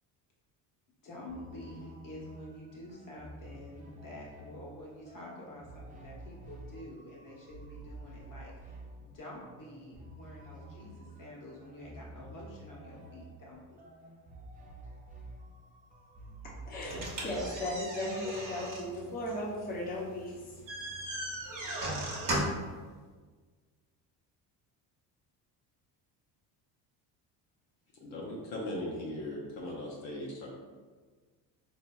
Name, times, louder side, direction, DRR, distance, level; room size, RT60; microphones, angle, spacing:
voice 1, 1.0-13.8, left 1 dB, 40° left, -4 dB, 1.3 m, -48 dB
sound 1, 1.3-18.6, right 1 dB, 20° right, 0.5 m, -50 dB
voice 2, 16.4-20.4, left 1 dB, 20° left, -4 dB, 0.8 m, -36 dB
sound 2, 16.9-22.7, right 1 dB, 40° right, 1.1 m, -37 dB
voice 3, 28.0-30.5, left 1 dB, 70° left, -3 dB, 0.9 m, -38 dB
3.9 x 2.7 x 2.3 m, 1.5 s
supercardioid pair, 80°, 48 cm